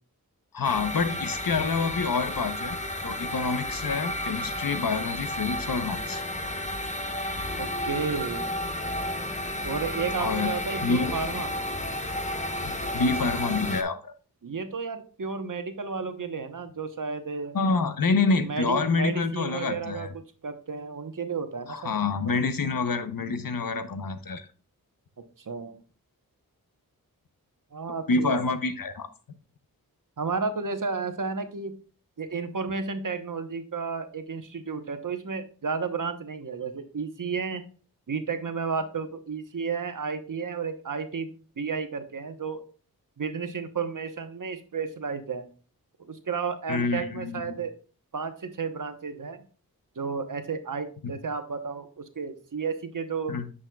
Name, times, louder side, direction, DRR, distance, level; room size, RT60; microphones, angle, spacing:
voice 1, 0.5-2.7 3.0-6.2 10.2-10.5 10.8-11.1 12.6-14.1 17.5-20.1 21.7-24.5 28.1-29.1 46.7-47.6 51.0-51.1 53.3-53.4, left 4 dB, 65° left, 10 dB, 0.9 m, -27 dB
sound 1, 0.6-13.8, left 1 dB, 20° left, 0.9 m, -32 dB
voice 2, 7.6-8.5 9.6-11.6 14.4-17.6 18.3-22.4 25.4-25.7 27.7-28.5 30.2-31.7 32.2-37.6 38.1-42.6 43.2-45.5 46.1-47.7 48.1-49.4 50.0-53.4, right 5 dB, 55° right, 9 dB, 1.0 m, -32 dB
9.1 x 6.3 x 2.3 m, 0.39 s
cardioid pair, 50°, 37 cm